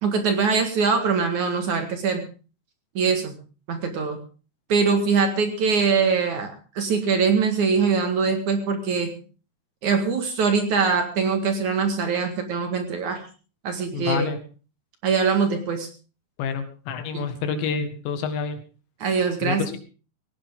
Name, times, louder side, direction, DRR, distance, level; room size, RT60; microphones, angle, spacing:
voice 1, 0.0-2.2 2.9-3.4 3.7-4.2 4.7-9.1 9.8-13.2 13.6-14.3 15.0-15.9 17.1-17.3 19.0-19.6, right 5 dB, 55° right, 6 dB, 2.8 m, -23 dB
voice 2, 13.9-14.4 16.4-18.6 19.4-19.8, left 6 dB, 85° left, 8 dB, 4.1 m, -28 dB
17.5 x 17.0 x 3.7 m, 0.36 s
omnidirectional pair, 4.9 m